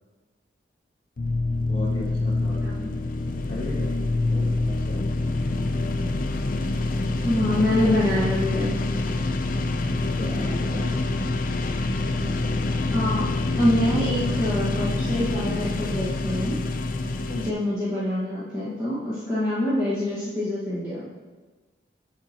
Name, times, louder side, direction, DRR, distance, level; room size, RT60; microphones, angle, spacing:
sound 1, 1.2-17.5, left 2 dB, 45° left, 0.5 m, -26 dB
voice 1, 1.7-2.8 3.5-5.1 7.3-7.9 10.1-11.0 12.1-12.6 17.2-17.5, left 2 dB, 30° left, -3 dB, 2.0 m, -36 dB
voice 2, 7.2-8.7 12.9-13.2 13.5-16.6 17.4-21.1, left 1 dB, 15° right, -11 dB, 1.5 m, -25 dB
13.0 x 4.9 x 2.9 m, 1.3 s
head